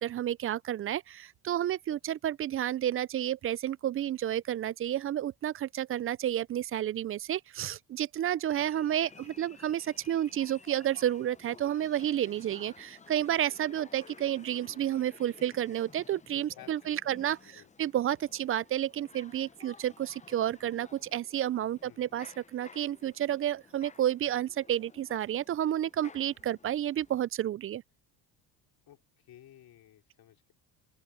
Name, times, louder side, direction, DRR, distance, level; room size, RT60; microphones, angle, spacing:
voice 1, 0.0-17.4 17.8-27.8, right 11 dB, 35° right, 0.4 m, -31 dB
sound 1, 8.5-27.2, left 5 dB, 15° left, 0.7 m, -55 dB
voice 2, 16.5-17.9 21.8-22.0 28.9-30.5, left 12 dB, 60° left, 3.0 m, -56 dB
open air
supercardioid pair, 90°, 41 cm